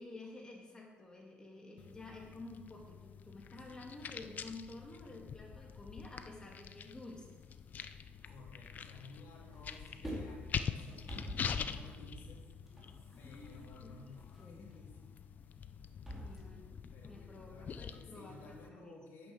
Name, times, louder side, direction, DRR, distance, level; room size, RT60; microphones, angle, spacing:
voice 1, 0.0-7.3 11.6-12.1 13.1-14.1 14.4-14.6 16.2-16.8 17.0-18.9, left 2 dB, 20° left, 0 dB, 2.7 m, -51 dB
sound 1, 1.8-18.7, left 7 dB, 45° left, 0.5 m, -45 dB
sound 2, 7.6-9.2 9.4-16.4, equal, 5° right, 3.2 m, -48 dB
voice 2, 8.2-11.1 11.4-12.5 13.2-15.2 16.1-19.3, left 3 dB, 70° left, -1 dB, 3.3 m, -56 dB
9.2 x 9.1 x 6.4 m, 1.3 s
cardioid pair, 120°, 4 cm